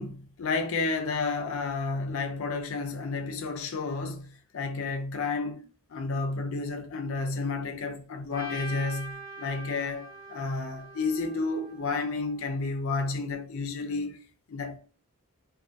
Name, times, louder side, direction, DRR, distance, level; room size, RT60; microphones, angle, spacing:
voice 1, 0.0-5.6 5.9-14.2 14.5-14.8, left 3 dB, 65° left, 0.4 m, -31 dB
Trumpet, 8.3-12.5, right 1 dB, 15° left, 0.7 m, -43 dB
2.3 x 2.2 x 2.6 m
head